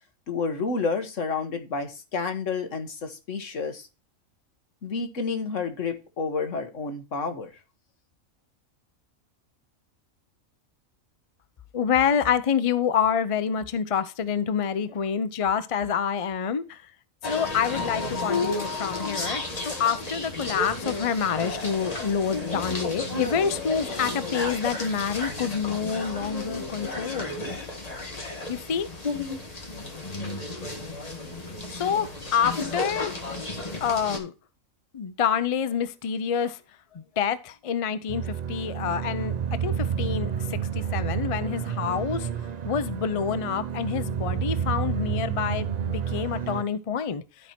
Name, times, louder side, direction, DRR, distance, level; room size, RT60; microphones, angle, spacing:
voice 1, 0.3-3.9 4.8-7.5, left 4 dB, 65° left, 1.6 m, -30 dB
voice 2, 11.7-16.8 17.2-27.4 28.5-28.9 31.8-33.1 33.8-34.3 34.9-36.6 36.9-39.3 39.6-42.3 42.7-47.2, left 7 dB, 50° left, 0.4 m, -27 dB
sound 1, 17.2-34.2, left 2 dB, 30° left, 1.8 m, -33 dB
sound 2, 38.1-46.6, right 8 dB, 45° right, 0.5 m, -30 dB
12.0 x 4.5 x 4.3 m
omnidirectional pair, 1.4 m